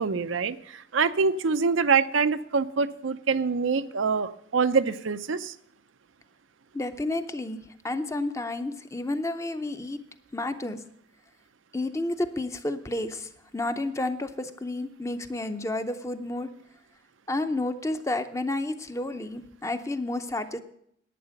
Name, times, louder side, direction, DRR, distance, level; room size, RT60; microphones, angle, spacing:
voice 1, 0.0-5.5, right 5 dB, 85° right, 11 dB, 0.6 m, -25 dB
voice 2, 6.7-7.6 7.8-10.0 10.3-10.8 11.7-16.5 17.3-20.6, left 2 dB, 15° left, 9 dB, 0.6 m, -31 dB
11.0 x 8.9 x 6.4 m, 0.70 s
head